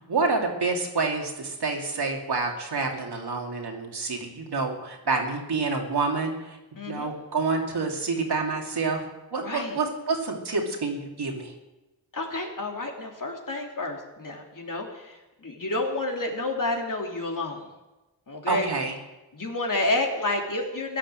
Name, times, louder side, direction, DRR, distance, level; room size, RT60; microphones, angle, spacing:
voice 1, 0.0-6.6 6.9-9.0 9.3-11.5 18.5-19.0, right 4 dB, 80° right, 1 dB, 2.7 m, -28 dB
voice 2, 6.8-7.1 9.4-9.8 12.1-17.7 18.3-18.7 19.3-21.0, left 2 dB, 55° left, 1 dB, 3.1 m, -30 dB
16.0 x 10.5 x 7.6 m, 1.0 s
wide cardioid pair, 65°, 39 cm